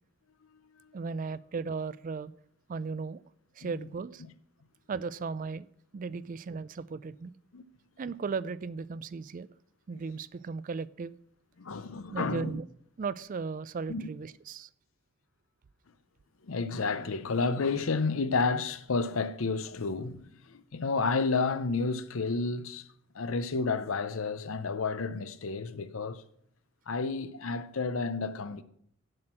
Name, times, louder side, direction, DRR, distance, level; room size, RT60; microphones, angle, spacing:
voice 1, 0.9-2.3 2.7-3.2 3.6-4.2 4.9-5.7 5.9-7.3 8.0-9.5 9.9-11.1 12.1-12.6 13.0-14.7, right 5 dB, 40° right, 0.3 m, -36 dB
voice 2, 11.6-12.6 13.9-14.1 16.4-22.9 23.1-26.2 26.9-28.6, left 4 dB, 80° left, 0.7 m, -31 dB
7.6 x 6.1 x 7.7 m
head